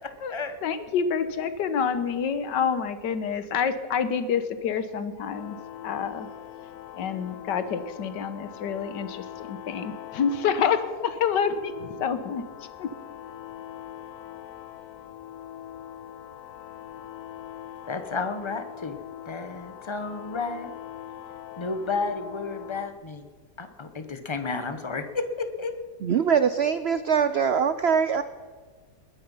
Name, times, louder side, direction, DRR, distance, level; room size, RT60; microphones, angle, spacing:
voice 1, 0.0-0.6 17.9-19.0 19.3-20.7 21.6-23.3 23.6-25.7, left 4 dB, 20° left, 8 dB, 0.8 m, -32 dB
voice 2, 0.6-5.6 5.8-6.3 6.9-12.4 12.8-12.9, left 7 dB, 90° left, 11 dB, 1.7 m, -27 dB
sound 1, 5.3-22.9, left 11 dB, 70° left, 1.2 m, -42 dB
voice 3, 26.0-28.2, right 7 dB, 80° right, 13 dB, 0.5 m, -23 dB
21.0 x 10.0 x 5.5 m, 1.5 s
omnidirectional pair, 1.8 m